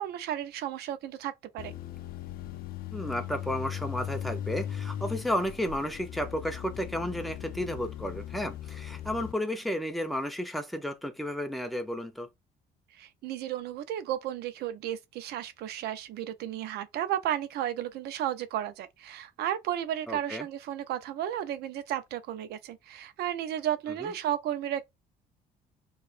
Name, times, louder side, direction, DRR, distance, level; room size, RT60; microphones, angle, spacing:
voice 1, 0.0-1.7 12.9-24.9, right 11 dB, 75° right, 0.6 m, -33 dB
sound 1, 1.6-9.3, left 11 dB, 60° left, 0.4 m, -38 dB
voice 2, 2.9-12.3 20.1-20.5 24.0-24.1, equal, ahead, 0.7 m, -32 dB
4.8 x 2.4 x 2.5 m
cardioid pair, 110°, 17 cm